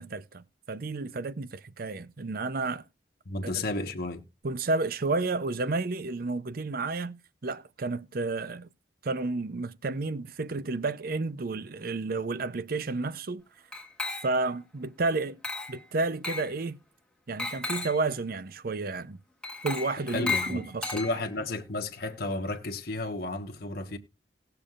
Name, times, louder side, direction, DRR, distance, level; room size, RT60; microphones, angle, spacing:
voice 1, 0.0-2.8 3.5-3.6 4.4-8.7 9.0-13.4 14.2-15.4 15.7-16.8 17.3-19.2 19.6-20.9, right 3 dB, 55° right, 0.6 m, -31 dB
voice 2, 3.2-4.2 20.1-24.0, left 2 dB, 55° left, 1.3 m, -33 dB
Glass, 13.7-14.6 15.4-15.8 16.2-16.5 17.4-18.0 19.4-21.5, left 4 dB, 5° left, 1.6 m, -34 dB
19.0 x 6.9 x 2.4 m
head